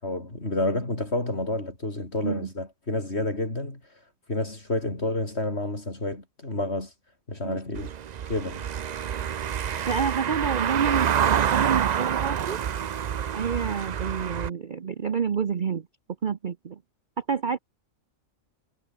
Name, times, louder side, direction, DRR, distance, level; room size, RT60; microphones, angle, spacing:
voice 1, 0.0-3.8 4.3-6.9 7.3-7.9 8.3-8.7, left 2 dB, 45° left, 5.4 m, -29 dB
Car passing by / Engine, 7.8-14.5, right 8 dB, 80° right, 0.3 m, -27 dB
voice 2, 9.9-12.6 13.3-15.9 16.2-16.8 17.2-17.6, right 6 dB, 45° right, 0.8 m, -28 dB
omnidirectional pair, 1.5 m